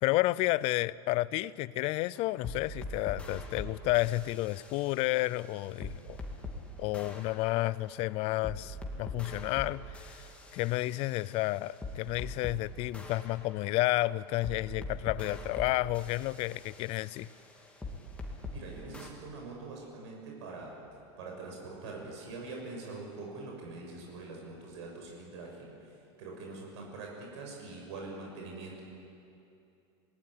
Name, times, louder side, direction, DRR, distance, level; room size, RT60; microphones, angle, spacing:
voice 1, 0.0-6.2 6.8-10.2 10.5-17.3, left 18 dB, 45° left, 20 dB, 0.5 m, -31 dB
sound 1, 2.2-6.6 6.9-12.6 12.9-18.6 18.9-19.1, left 1 dB, 10° left, 2.4 m, -43 dB
voice 2, 18.5-20.8 21.2-28.8, right 3 dB, 80° right, -1 dB, 6.6 m, -44 dB
25.5 x 19.5 x 10.0 m, 2.7 s
supercardioid pair, 150°, 15 cm